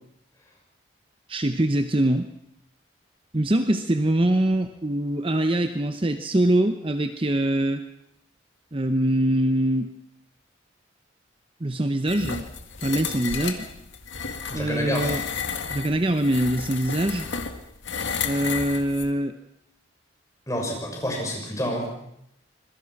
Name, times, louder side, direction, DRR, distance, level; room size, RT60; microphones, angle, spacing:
voice 1, 1.3-2.3 3.3-7.8 8.7-9.9 11.6-12.5 12.8-13.7 14.5-15.2 15.7-17.3 18.2-19.3, right 1 dB, 25° right, 8 dB, 0.8 m, -23 dB
sound 1, 12.1-19.1, left 6 dB, 70° left, 2.0 m, -32 dB
voice 2, 14.5-15.2 20.5-21.9, equal, 15° left, 0 dB, 6.6 m, -28 dB
26.0 x 22.0 x 6.0 m, 0.77 s
head